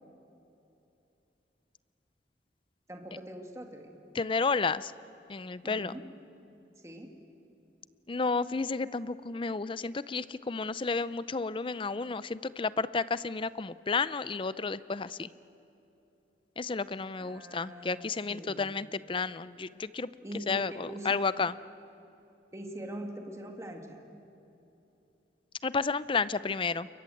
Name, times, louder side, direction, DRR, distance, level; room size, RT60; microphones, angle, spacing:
voice 1, 2.9-4.0 5.6-6.0 6.8-7.1 17.2-18.7 20.2-21.2 22.5-24.0, right 1 dB, 15° right, 2 dB, 2.2 m, -43 dB
voice 2, 4.1-4.9 5.3-5.9 8.1-15.3 16.6-20.1 20.5-21.5 25.6-26.9, left 4 dB, 30° left, 16 dB, 0.5 m, -31 dB
28.5 x 23.0 x 7.9 m, 2.8 s
head